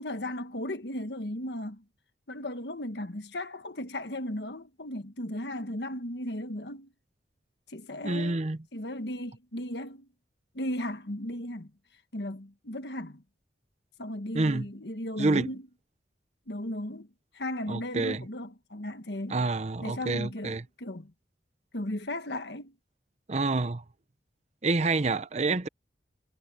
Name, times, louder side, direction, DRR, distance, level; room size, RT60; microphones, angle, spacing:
voice 1, 0.0-1.8 2.3-6.9 7.7-8.4 8.7-10.1 10.5-11.7 12.1-13.2 14.0-15.7 16.5-17.1 17.3-19.5 19.8-21.1 21.7-22.7, left 1 dB, 70° left, 1.6 m, -36 dB
voice 2, 8.0-8.6 14.3-14.6 15.2-15.5 17.7-18.2 19.3-20.6 23.3-23.8 24.6-25.7, right 3 dB, 40° right, 0.8 m, -27 dB
head